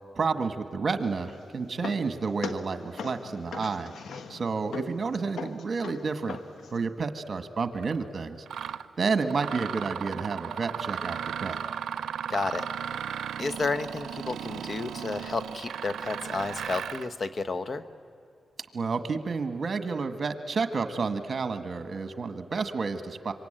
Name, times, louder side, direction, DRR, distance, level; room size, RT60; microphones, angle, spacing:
voice 1, 0.2-3.9 4.3-6.4 6.7-8.4 9.0-11.6 18.7-23.3, right 4 dB, 55° right, 9 dB, 1.6 m, -30 dB
sound 1, 1.1-6.9, left 5 dB, 85° left, 1.4 m, -41 dB
Mechanisms, 7.8-8.0 8.5-8.8 9.3-17.1, right 8 dB, 90° right, 0.6 m, -35 dB
voice 2, 12.3-12.7 13.4-17.8, left 3 dB, 50° left, 11 dB, 1.2 m, -31 dB
26.0 x 24.0 x 9.0 m, 2.3 s
cardioid pair, 70°, 0 cm